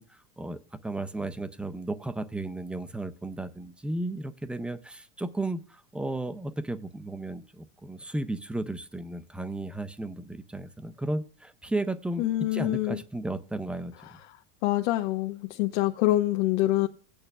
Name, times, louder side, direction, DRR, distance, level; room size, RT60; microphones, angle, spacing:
voice 1, 0.0-13.9, right 2 dB, 5° right, 0.4 m, -34 dB
voice 2, 12.2-13.0 14.6-16.9, left 16 dB, 75° left, 0.9 m, -25 dB
17.0 x 8.9 x 2.3 m
supercardioid pair, 140°, 35 cm